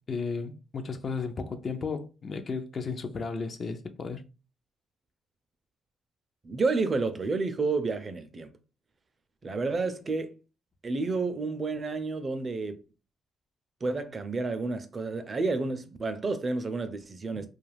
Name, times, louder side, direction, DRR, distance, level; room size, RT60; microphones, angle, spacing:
voice 1, 0.1-4.2, left 4 dB, 45° left, 0.4 m, -34 dB
voice 2, 6.4-8.5 9.4-10.3 10.8-12.8 13.8-17.5, right 3 dB, 35° right, 0.4 m, -30 dB
2.3 x 2.3 x 3.3 m
cardioid pair, 90°, 0 cm